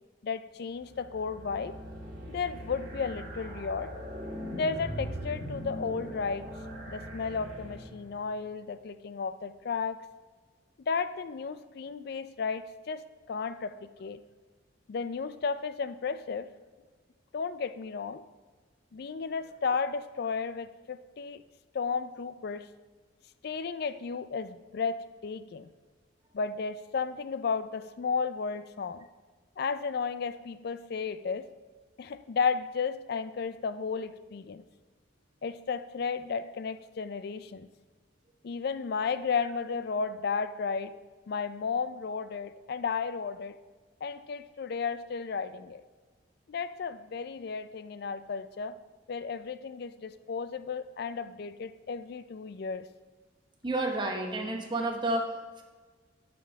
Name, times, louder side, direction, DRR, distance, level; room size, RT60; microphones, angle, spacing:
voice 1, 0.2-1.8 2.3-3.9 4.5-6.5 6.9-10.0 10.8-14.2 14.9-16.5 17.3-18.2 18.9-21.4 21.7-22.7 23.4-25.7 26.3-29.1 29.6-31.5 32.0-34.6 35.4-37.7 38.4-41.0 41.3-43.6 44.0-45.8 46.5-48.8 49.1-52.8, left 5 dB, 55° left, 13 dB, 0.4 m, -33 dB
sound 1, 0.8-8.2, equal, 45° right, 1.5 m, -40 dB
voice 2, 53.6-55.6, right 2 dB, 25° right, 2 dB, 0.8 m, -31 dB
11.0 x 5.3 x 3.5 m, 1.4 s
head